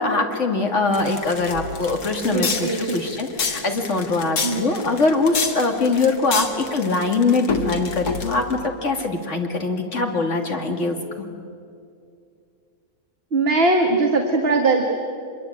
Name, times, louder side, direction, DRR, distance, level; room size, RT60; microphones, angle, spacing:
voice 1, 0.0-11.0, left 3 dB, 50° left, 3 dB, 2.8 m, -22 dB
sound 1, 0.9-8.6, left 4 dB, 85° left, 2.3 m, -28 dB
voice 2, 2.3-2.9 4.4-4.6 13.3-14.9, right 3 dB, 40° right, 3 dB, 1.8 m, -20 dB
25.0 x 22.5 x 8.9 m, 2.4 s
omnidirectional pair, 1.6 m